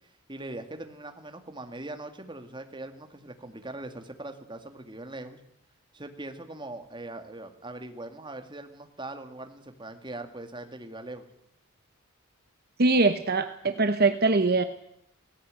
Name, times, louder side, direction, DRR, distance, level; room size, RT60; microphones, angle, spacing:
voice 1, 0.3-5.4 5.9-11.3, right 2 dB, 20° right, 6 dB, 2.0 m, -41 dB
voice 2, 12.8-14.6, right 3 dB, 45° right, 9 dB, 1.0 m, -22 dB
17.5 x 17.0 x 8.9 m, 0.76 s
head